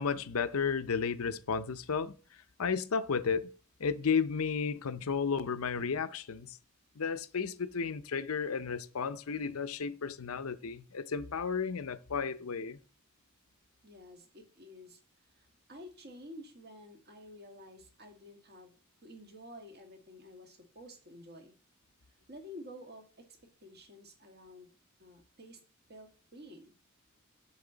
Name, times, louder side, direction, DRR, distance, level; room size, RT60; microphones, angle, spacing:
voice 1, 0.0-2.1 2.6-3.5 3.8-6.6 7.0-12.8, left 5 dB, 80° left, 0.6 m, -33 dB
voice 2, 13.8-15.0 15.3-21.5 22.3-23.3 23.6-24.7 25.0-25.6 25.9-26.7, left 1 dB, 50° right, 1.9 m, -51 dB
7.7 x 7.1 x 3.9 m
head